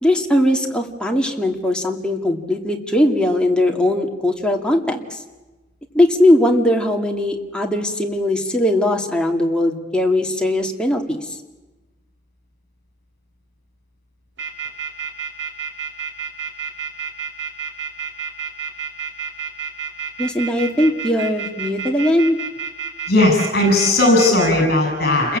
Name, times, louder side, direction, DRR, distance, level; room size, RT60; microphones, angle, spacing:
voice 1, 0.0-5.2 5.9-11.3 20.2-22.4, left 1 dB, 5° left, 1 dB, 2.5 m, -19 dB
sound 1, 14.4-24.5, right 7 dB, 70° right, 6.1 m, -29 dB
voice 2, 23.1-25.4, left 2 dB, 50° left, 2 dB, 7.9 m, -16 dB
29.5 x 21.5 x 8.8 m, 1.1 s
head